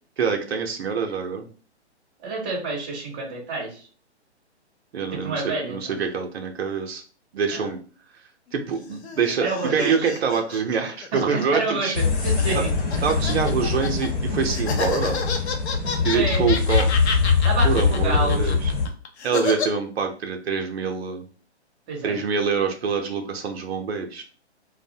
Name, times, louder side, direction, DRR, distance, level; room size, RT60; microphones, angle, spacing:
voice 1, 0.2-1.5 4.9-7.0 7.3-7.8 8.5-12.0 12.5-12.6 13.0-15.2 16.0-17.2 17.6-18.7 19.2-21.2 22.0-24.2, right 6 dB, 65° right, 4 dB, 0.5 m, -25 dB
voice 2, 2.2-3.8 5.2-6.0 7.5-7.7 9.4-10.1 11.3-12.7 12.9-13.0 16.1-16.5 17.4-18.5 21.9-22.2, right 3 dB, 15° right, -2 dB, 0.6 m, -29 dB
sound 1, 8.7-14.1 14.5-19.7, left 5 dB, 70° left, 0.6 m, -30 dB
sound 2, 11.9-18.9, left 4 dB, 90° left, 1.0 m, -23 dB
2.5 x 2.0 x 2.6 m, 0.40 s
figure-of-eight pair, 130°, 34 cm